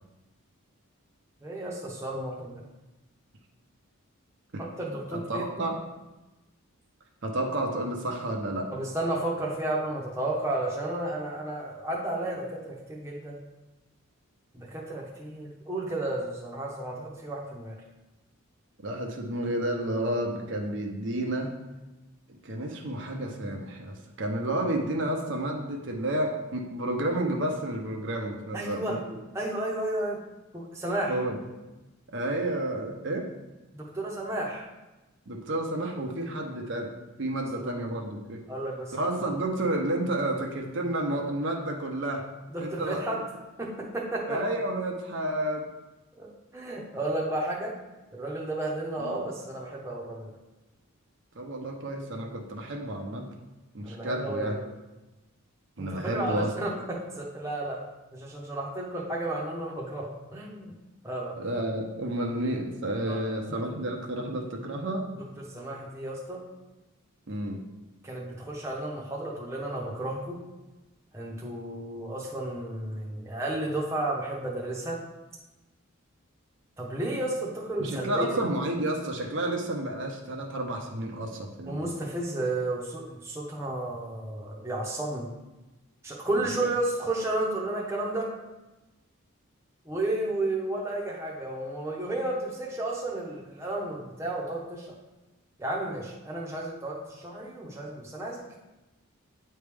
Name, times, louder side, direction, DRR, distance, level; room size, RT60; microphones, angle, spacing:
voice 1, 1.4-2.6 4.6-5.6 8.7-13.4 14.5-17.8 28.5-29.0 29.3-30.2 30.5-31.1 33.8-34.6 37.6-37.7 38.5-38.9 39.2-39.3 42.5-43.2 43.6-44.4 46.2-47.7 48.1-50.3 53.8-54.7 55.8-57.8 58.1-60.7 61.0-61.4 63.1-63.2 63.5-63.6 65.5-66.4 68.0-70.4 71.1-75.0 76.8-78.3 81.7-85.3 86.0-88.3 89.8-94.9 95.6-98.4, right 1 dB, 10° right, -3 dB, 0.9 m, -32 dB
voice 2, 5.1-5.8 7.2-8.7 18.8-21.5 22.3-29.2 31.1-31.4 32.1-33.3 35.3-36.9 37.2-38.4 38.9-42.3 42.6-43.0 44.3-45.6 49.0-49.2 51.4-53.3 53.7-54.6 55.8-56.5 61.4-65.1 67.3-67.6 77.8-81.9 86.4-86.6, right 1 dB, 55° right, 1 dB, 0.7 m, -31 dB
9.1 x 3.2 x 3.5 m, 1.1 s
head